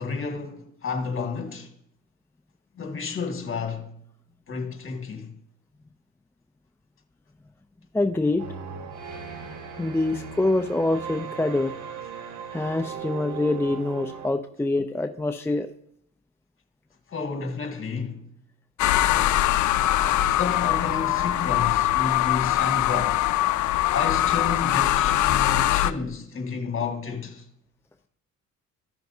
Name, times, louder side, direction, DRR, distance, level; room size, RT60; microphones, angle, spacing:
voice 1, 0.0-1.7 2.7-3.9 4.5-5.4 17.1-18.2 20.3-23.3 23.9-27.4, left 4 dB, 45° left, 1.8 m, -31 dB
voice 2, 7.9-8.4 9.8-11.7 12.5-15.7 19.3-19.5, left 2 dB, 10° left, 0.4 m, -25 dB
sound 1, 8.4-14.3, right 7 dB, 80° right, 1.1 m, -38 dB
sound 2, 18.8-25.9, left 14 dB, 75° left, 0.5 m, -22 dB
15.0 x 5.8 x 2.7 m
cardioid pair, 90°, 30 cm